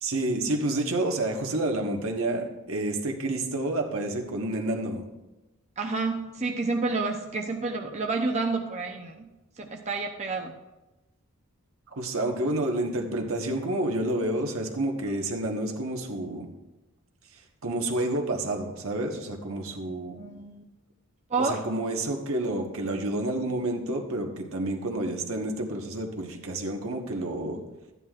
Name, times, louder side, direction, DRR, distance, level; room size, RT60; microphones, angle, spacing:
voice 1, 0.0-5.0 11.9-16.5 17.6-20.1 21.4-27.6, right 1 dB, 75° right, 1 dB, 1.3 m, -29 dB
voice 2, 5.8-9.3 9.6-10.5 15.1-15.2 20.2-20.7 21.3-21.6, right 3 dB, 35° right, 1 dB, 0.6 m, -29 dB
13.0 x 9.8 x 2.5 m, 1.0 s
head